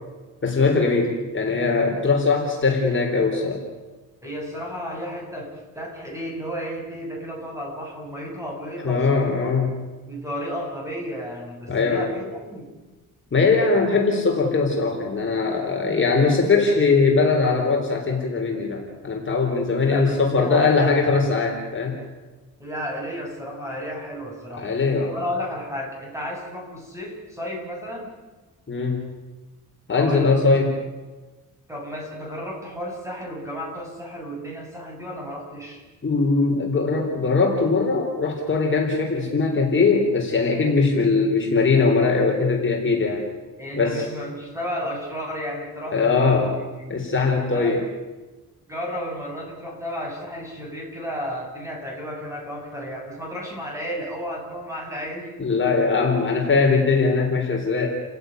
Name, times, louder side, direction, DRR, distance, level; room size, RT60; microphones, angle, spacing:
voice 1, 0.4-3.6 8.8-9.7 11.7-12.1 13.3-22.0 24.5-25.1 28.7-29.0 29.9-30.7 36.0-43.2 43.7-44.0 45.9-46.5 46.9-47.8 55.4-57.9, left 4 dB, 35° left, 1 dB, 4.2 m, -21 dB
voice 2, 4.2-9.5 10.1-12.7 19.9-21.1 22.6-24.7 25.1-28.1 29.9-30.6 31.7-35.8 43.6-47.0 47.5-47.8 48.7-55.3, equal, 10° right, -1 dB, 7.3 m, -33 dB
30.0 x 16.0 x 9.5 m, 1.2 s
wide cardioid pair, 145°, 34 cm